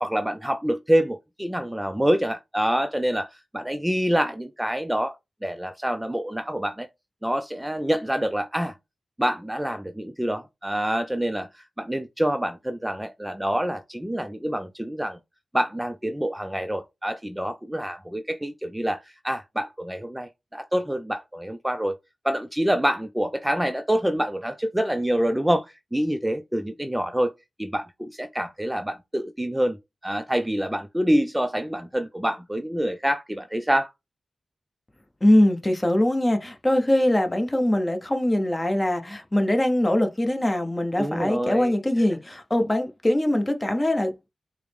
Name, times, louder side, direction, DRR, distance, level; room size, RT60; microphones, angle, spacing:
voice 1, 0.0-5.2 5.4-6.9 7.2-8.8 9.2-15.2 15.5-22.0 22.2-27.3 27.6-29.8 30.0-33.9 41.0-41.7, equal, 10° right, 0.4 m, -26 dB
voice 2, 35.2-44.3, left 1 dB, 20° left, 0.8 m, -22 dB
4.6 x 2.0 x 3.3 m
cardioid pair, 65°, 0 cm